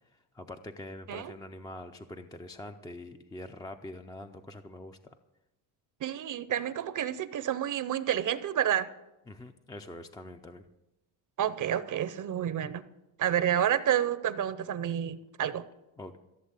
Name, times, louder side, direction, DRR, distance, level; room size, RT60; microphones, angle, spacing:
voice 1, 0.1-5.1 9.3-10.6 16.0-16.2, left 1 dB, 10° left, 6 dB, 0.4 m, -44 dB
voice 2, 6.0-8.9 11.4-12.8 13.2-15.6, right 10 dB, 40° right, 14 dB, 0.6 m, -29 dB
15.0 x 7.1 x 8.2 m, 0.97 s
cardioid pair, 125°, 48 cm